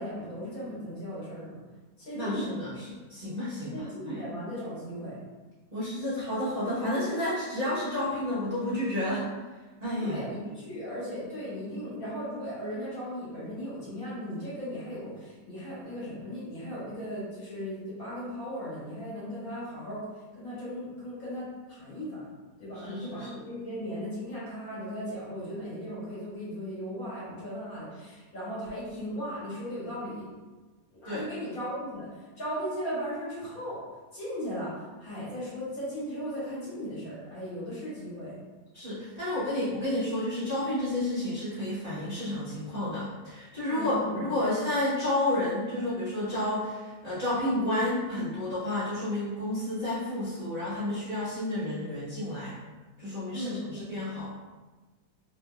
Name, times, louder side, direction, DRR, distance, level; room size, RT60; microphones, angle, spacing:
voice 1, 0.0-1.6 2.0-2.5 3.7-5.2 10.0-20.0 20.3-22.3 22.6-30.4 30.9-33.8 34.1-38.4 43.7-44.3 53.3-53.9, equal, 60° left, -10 dB, 2.0 m, -37 dB
voice 2, 2.1-4.2 5.7-9.2 9.8-10.2 22.8-23.3 31.0-31.2 38.7-52.5 53.0-54.3, left 1 dB, 30° right, -14 dB, 1.0 m, -31 dB
3.3 x 3.1 x 2.2 m, 1.3 s
omnidirectional pair, 1.7 m